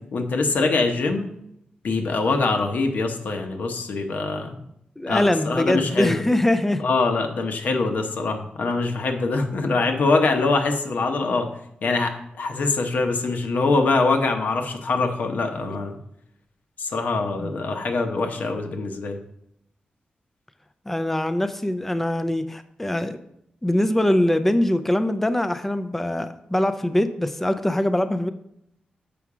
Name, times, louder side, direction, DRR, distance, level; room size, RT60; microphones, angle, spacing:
voice 1, 0.1-1.3 1.8-4.6 5.1-6.2 6.8-11.5 11.8-16.0 16.8-19.2, left 3 dB, 70° left, 4 dB, 1.0 m, -23 dB
voice 2, 5.0-6.8 17.4-17.5 20.9-23.2 23.6-28.3, left 1 dB, 10° left, 10 dB, 0.4 m, -23 dB
7.1 x 5.8 x 4.9 m, 0.76 s
wide cardioid pair, 155°, 3 cm